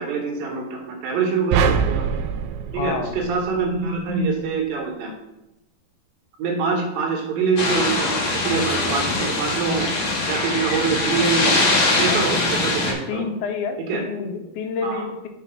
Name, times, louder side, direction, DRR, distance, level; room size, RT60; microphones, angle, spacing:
voice 1, 0.0-2.0 2.7-5.1 6.4-9.9 10.3-13.3 13.9-14.0 14.8-15.0, right 5 dB, 70° right, 0 dB, 2.7 m, -25 dB
sound 1, 1.5-3.9, right 6 dB, 90° right, 2.7 m, -23 dB
voice 2, 2.7-3.1 12.1-12.2 13.1-15.3, left 5 dB, 80° left, 6 dB, 2.5 m, -28 dB
sound 2, 7.6-12.9, left 2 dB, 65° left, 1.2 m, -22 dB
6.8 x 4.1 x 6.1 m, 0.94 s
omnidirectional pair, 4.6 m